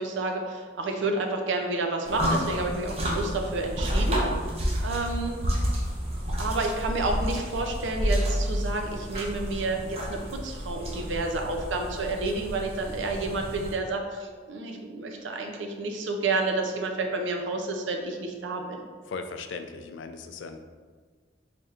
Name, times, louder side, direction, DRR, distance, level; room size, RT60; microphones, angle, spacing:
voice 1, 0.0-4.3 4.8-5.4 6.4-18.8, right 2 dB, 90° right, 3 dB, 0.5 m, -30 dB
sound 1, 2.0-13.7, equal, 35° right, 0.6 m, -30 dB
voice 2, 19.1-20.6, left 4 dB, 90° left, 7 dB, 0.3 m, -38 dB
4.1 x 3.4 x 2.4 m, 1.5 s
head